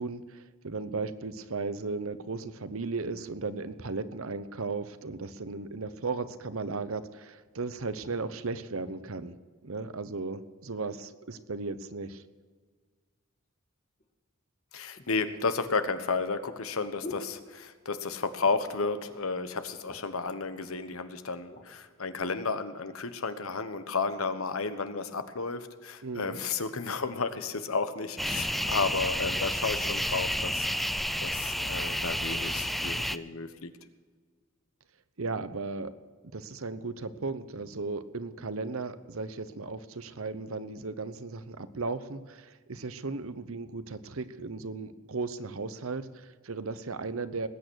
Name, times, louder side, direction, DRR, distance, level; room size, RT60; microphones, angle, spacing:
voice 1, 0.0-9.3 9.6-12.2 26.0-26.4 35.2-35.9 36.3-47.5, right 3 dB, 75° right, 13 dB, 0.9 m, -36 dB
sound 1, 14.0-14.1 14.9-18.0 18.3-18.8 19.2-19.3 19.6-20.3 21.0-21.7 22.3-22.5, left 2 dB, 40° left, 2.1 m, -47 dB
voice 2, 14.7-33.7, left 4 dB, 80° left, 10 dB, 1.2 m, -32 dB
sound 2, 28.2-33.2, equal, ahead, 0.4 m, -30 dB
20.0 x 8.8 x 6.4 m, 1.5 s
head